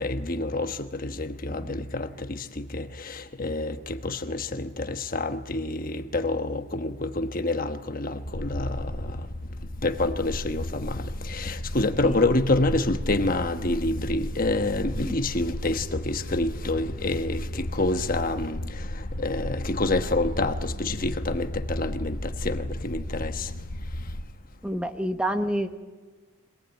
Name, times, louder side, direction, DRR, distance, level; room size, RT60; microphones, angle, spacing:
voice 1, 0.0-2.5 2.7-9.1 9.8-18.6 19.2-23.5, left 2 dB, 40° left, 1.2 m, -27 dB
voice 2, 1.5-1.8 12.0-12.2 15.0-15.2 24.6-25.7, right 1 dB, 5° right, 1.0 m, -29 dB
sound 1, 8.2-24.2, left 1 dB, 80° left, 1.8 m, -34 dB
25.0 x 18.5 x 9.1 m
head